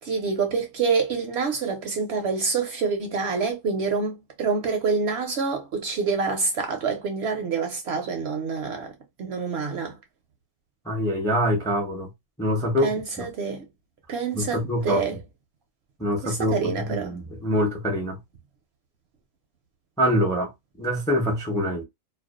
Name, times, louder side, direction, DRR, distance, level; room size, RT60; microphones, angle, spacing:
voice 1, 0.0-8.9 9.2-10.0 12.8-13.7 14.1-15.2 16.2-17.1, right 5 dB, 65° right, 0.7 m, -27 dB
voice 2, 10.8-12.1 12.4-13.3 14.3-15.0 16.0-18.2 20.0-20.5 20.8-21.8, equal, 5° left, 0.4 m, -25 dB
2.4 x 2.2 x 2.3 m
omnidirectional pair, 1.4 m